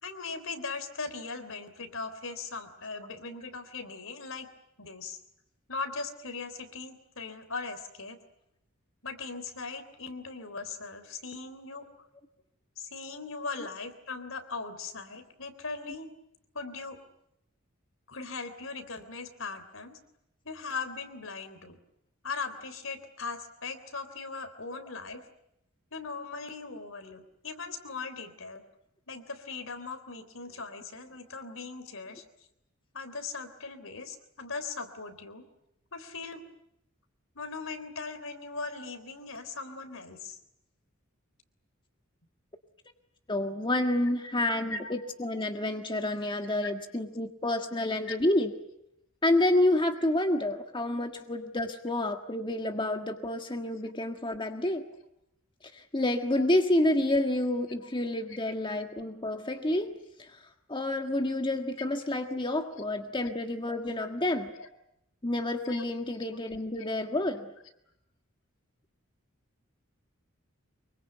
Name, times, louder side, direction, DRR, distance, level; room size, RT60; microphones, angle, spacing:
voice 1, 0.0-4.5 4.8-5.2 5.7-8.2 9.0-11.9 12.8-16.1 16.5-17.0 18.1-20.0 20.5-21.8 22.2-25.2 25.9-28.6 29.1-32.2 32.9-35.5 35.9-36.4 37.4-40.4 44.7-44.9 46.6-46.7 48.1-48.2 56.4-56.5 62.8-62.9 64.6-64.7 65.6-65.8, left 4 dB, 75° left, 9 dB, 3.5 m, -39 dB
voice 2, 43.3-48.5 49.2-54.9 55.6-64.5 65.2-67.5, left 1 dB, 25° left, 5 dB, 1.6 m, -29 dB
25.0 x 24.0 x 9.2 m, 0.80 s
head